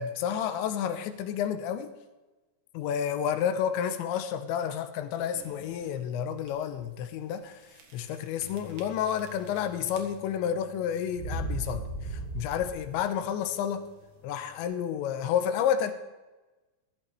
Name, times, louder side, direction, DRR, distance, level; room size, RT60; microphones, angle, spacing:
voice 1, 0.0-1.9 2.7-7.6 7.9-13.9 14.2-15.9, left 9 dB, 90° left, 9 dB, 3.1 m, -30 dB
sound 1, 5.3-5.8 6.4-6.5 6.7-6.8 7.7-8.1 8.4-9.6 9.9-10.4 11.1-13.0, right 2 dB, 55° right, 2.7 m, -37 dB
sound 2, 8.4-14.6, left 10 dB, 45° left, 3.3 m, -54 dB
15.0 x 13.5 x 3.3 m, 1.1 s
omnidirectional pair, 5.3 m